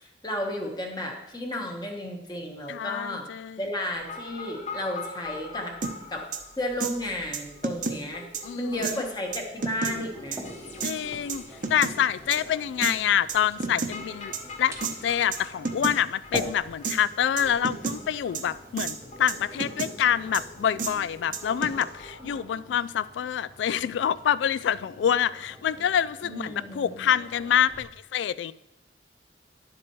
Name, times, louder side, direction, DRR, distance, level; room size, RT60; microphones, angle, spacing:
voice 1, 0.0-3.3 3.6-5.7 6.1-6.2 6.6-8.2 8.5-10.5 26.2-27.0, left 1 dB, 25° left, 1.2 m, -33 dB
voice 2, 2.7-3.6 8.4-8.8 10.8-11.4 11.7-14.3 14.6-28.5, left 9 dB, 90° left, 0.3 m, -26 dB
sound 1, 3.9-22.4, left 3 dB, 40° left, 0.9 m, -45 dB
sound 2, 5.8-5.9 6.3-6.4 6.8-6.9 7.3-8.0 8.3-8.4 8.8-9.0 9.3-9.9 10.3-10.4 10.8-10.9 11.3-11.9 12.3-12.4 12.8-12.9 13.3-13.9 14.3-14.4 14.8-14.9 15.3-15.4 15.6-16.0 16.3-16.4 16.8-17.0 17.4-18.0 18.3-18.4 18.8-19.0 19.3-19.9 20.3-20.4 20.8-20.9 21.3-21.8, right 5 dB, 50° right, 0.7 m, -30 dB
sound 3, 9.9-27.9, right 1 dB, 15° right, 0.8 m, -46 dB
10.0 x 7.6 x 3.1 m
head